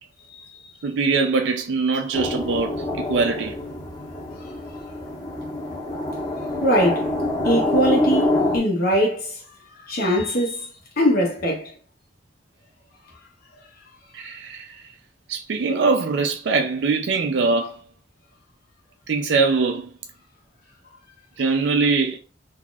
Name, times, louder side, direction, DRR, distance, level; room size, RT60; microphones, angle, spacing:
voice 1, 0.8-3.5 14.1-14.8 15.3-17.8 19.1-19.9 21.4-22.2, right 4 dB, 90° right, 0.4 m, -22 dB
sound 1, 2.1-8.6, left 2 dB, 20° left, 1.3 m, -26 dB
voice 2, 6.6-7.1 7.4-9.4 9.9-11.7, equal, 55° left, 1.0 m, -22 dB
3.9 x 2.8 x 2.3 m
head